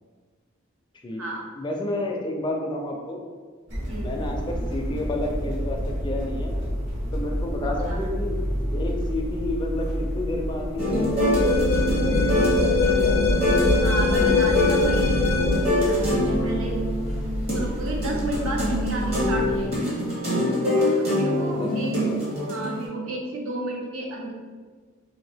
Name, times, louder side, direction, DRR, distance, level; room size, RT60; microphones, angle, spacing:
voice 1, 1.6-3.2 4.0-6.6 7.1-8.4 8.7-14.6 21.5-22.2, left 1 dB, 20° left, 0 dB, 0.4 m, -31 dB
sound 1, 3.7-19.7, equal, 55° right, 1.1 m, -30 dB
voice 2, 3.9-4.2 7.8-8.0 13.8-16.8 17.4-19.9 21.0-21.9 22.4-24.3, right 1 dB, 75° right, -1 dB, 0.6 m, -32 dB
sound 2, 10.8-22.8, left 1 dB, 30° right, 0.8 m, -25 dB
sound 3, 11.3-15.8, left 3 dB, 75° left, 0.5 m, -22 dB
2.8 x 2.7 x 3.4 m, 1.5 s
head